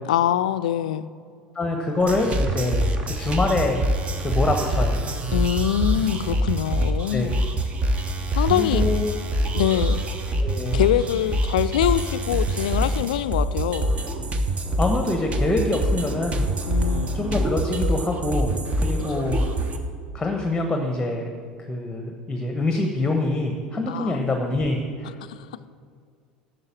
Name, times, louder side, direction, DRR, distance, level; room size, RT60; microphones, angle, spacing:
voice 1, 0.1-1.1 5.3-7.4 8.4-8.9 9.5-10.0 10.7-14.0 16.6-17.4 19.2-19.3 23.9-24.2 25.2-25.4, left 11 dB, 65° left, 13 dB, 0.4 m, -24 dB
voice 2, 1.5-2.9 3.2-3.8 4.2-5.0 7.1-7.3 8.5-9.1 10.4-10.8 14.8-16.5 17.1-18.5 18.8-19.4 20.1-21.3 21.7-25.1, left 2 dB, 10° left, 3 dB, 1.0 m, -25 dB
sound 1, 2.0-19.8, right 1 dB, 30° right, 1.0 m, -25 dB
11.0 x 6.7 x 7.3 m, 2.1 s
figure-of-eight pair, 75°, 4 cm